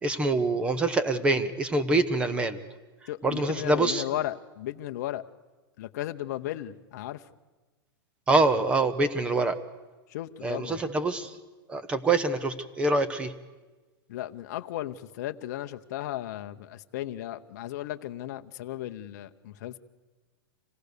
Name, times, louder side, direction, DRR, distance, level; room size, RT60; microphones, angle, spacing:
voice 1, 0.0-2.6 3.2-4.0 8.3-9.6 10.4-11.3 11.7-13.3, right 2 dB, 10° right, 12 dB, 0.7 m, -25 dB
voice 2, 3.1-5.2 5.8-7.2 10.1-10.8 14.1-19.8, left 13 dB, 45° left, 8 dB, 0.8 m, -35 dB
26.0 x 17.5 x 6.7 m, 1.2 s
supercardioid pair, 170°, 12 cm